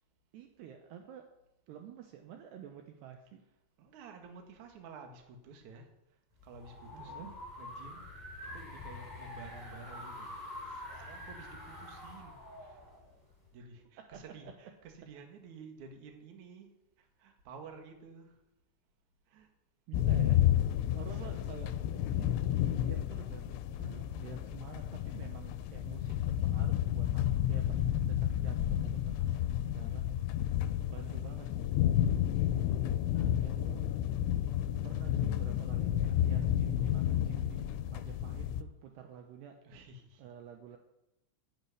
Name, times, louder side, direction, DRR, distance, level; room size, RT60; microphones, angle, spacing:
voice 1, 0.3-1.3 1.7-3.4 6.9-7.3 14.1-14.2 19.9-20.4 21.0-30.1 30.9-31.7 33.4-33.9 34.8-39.6 40.2-40.8, right 9 dB, 75° right, 4 dB, 2.9 m, -50 dB
voice 2, 3.8-5.9 6.4-8.1 8.4-12.8 13.5-16.7 17.0-18.4 19.3-19.5 21.0-21.4 30.9-31.5 32.7-33.4 39.6-40.2, right 4 dB, 50° right, 4 dB, 2.6 m, -52 dB
sound 1, 6.4-13.5, left 1 dB, 10° left, 4.8 m, -46 dB
sound 2, 19.9-38.6, left 11 dB, 80° left, 2.9 m, -31 dB
11.5 x 9.0 x 9.7 m, 0.89 s
omnidirectional pair, 5.4 m